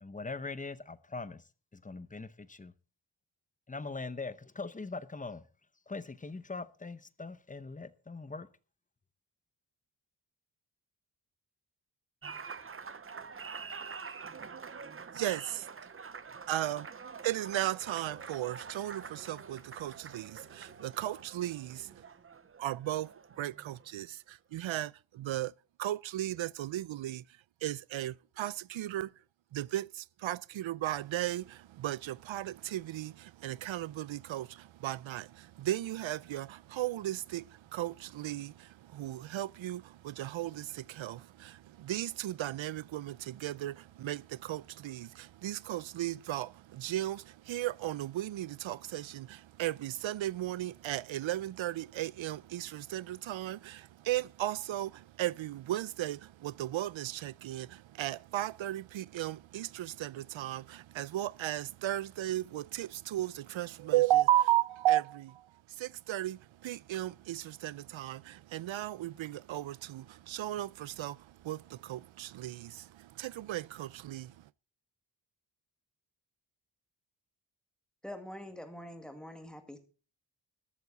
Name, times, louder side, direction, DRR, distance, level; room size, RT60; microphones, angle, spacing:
voice 1, 0.0-1.4 1.7-2.7 3.7-5.4 5.9-8.5, left 3 dB, 15° left, 0.8 m, -41 dB
Applause, 12.2-24.0, right 5 dB, 30° right, 0.6 m, -46 dB
voice 2, 15.1-15.7 16.5-16.9 17.2-22.0 22.6-23.1 23.4-25.5 25.8-27.2 27.6-29.1 29.5-74.5, right 14 dB, 85° right, 0.5 m, -35 dB
voice 3, 78.0-79.8, left 1 dB, ahead, 1.9 m, -45 dB
14.0 x 13.0 x 4.0 m
wide cardioid pair, 175°, 46 cm